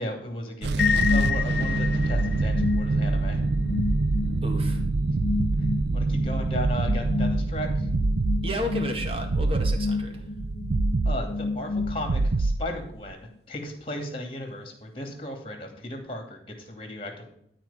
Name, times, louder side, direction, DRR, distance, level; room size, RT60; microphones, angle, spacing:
voice 1, 0.0-3.4 5.9-7.9 11.0-17.3, equal, 30° left, 4 dB, 2.6 m, -35 dB
sound 1, 0.6-13.1, right 3 dB, 80° right, 0.5 m, -26 dB
sound 2, 0.8-12.4, left 4 dB, 70° left, 0.6 m, -30 dB
voice 2, 4.4-4.8 8.4-10.3, equal, 30° right, 3 dB, 1.9 m, -32 dB
12.5 x 4.6 x 7.1 m, 0.70 s
head